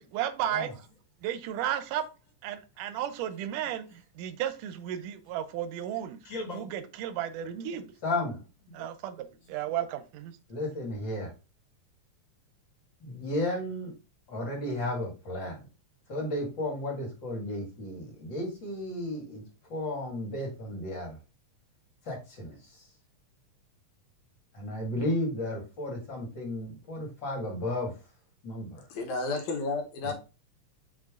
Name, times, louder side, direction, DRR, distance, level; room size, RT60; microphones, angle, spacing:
voice 1, 0.1-0.9 1.2-2.0 2.4-6.2 6.5-7.9 8.7-10.4, right 10 dB, 85° right, 2.2 m, -34 dB
voice 2, 6.3-6.7 8.0-8.4 10.5-11.3 13.0-13.9 14.3-15.6 16.1-19.4 19.7-21.2 22.1-22.6 24.5-27.9 28.4-28.8 30.0-30.1, left 1 dB, 40° left, 2.2 m, -33 dB
voice 3, 28.9-30.1, left 3 dB, 70° left, 2.3 m, -31 dB
6.5 x 4.3 x 3.6 m
omnidirectional pair, 3.6 m